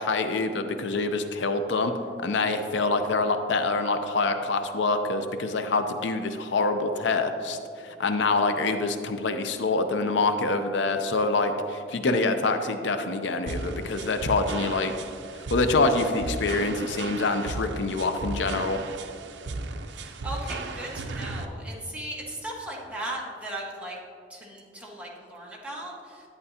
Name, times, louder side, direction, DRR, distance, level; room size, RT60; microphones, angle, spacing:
voice 1, 0.0-1.9 2.2-7.6 7.8-14.9 15.5-18.8, left 3 dB, 75° left, 8 dB, 0.5 m, -26 dB
sound 1, 13.5-21.5, right 3 dB, 70° right, 0.5 m, -35 dB
voice 2, 20.0-24.0 24.3-26.3, right 1 dB, 5° right, -4 dB, 1.3 m, -37 dB
11.0 x 8.9 x 2.8 m, 2.3 s
head